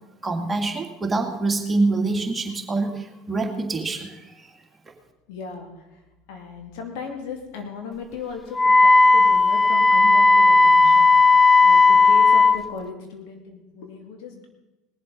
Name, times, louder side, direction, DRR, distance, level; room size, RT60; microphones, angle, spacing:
voice 1, 0.2-4.3, right 3 dB, 20° right, 2 dB, 2.2 m, -25 dB
voice 2, 5.3-14.5, left 4 dB, 70° left, 3 dB, 2.7 m, -37 dB
Wind instrument woodwind instrument, 8.6-12.6, left 3 dB, 10° left, 0.4 m, -14 dB
19.5 x 7.6 x 5.4 m, 1.0 s
hypercardioid pair, 90°, 0 cm